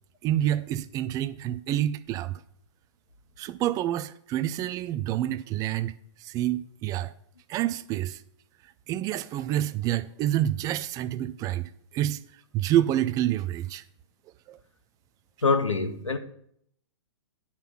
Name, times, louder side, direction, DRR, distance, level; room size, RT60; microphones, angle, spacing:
voice 1, 0.2-2.4 3.4-5.9 6.2-7.1 7.5-8.2 8.9-12.2 12.5-13.8 14.5-14.6, right 12 dB, 25° right, 0.5 m, -28 dB
voice 2, 15.4-16.2, left 4 dB, 90° left, 1.6 m, -24 dB
10.0 x 5.6 x 5.9 m
figure-of-eight pair, 120°, 16 cm